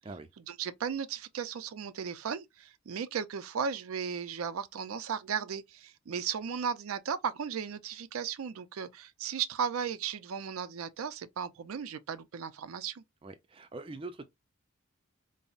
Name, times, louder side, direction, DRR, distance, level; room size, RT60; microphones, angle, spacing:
voice 1, 0.4-13.0, right 7 dB, 90° right, 0.4 m, -36 dB
voice 2, 13.2-14.2, right 2 dB, 25° right, 0.4 m, -43 dB
5.3 x 2.0 x 2.4 m
head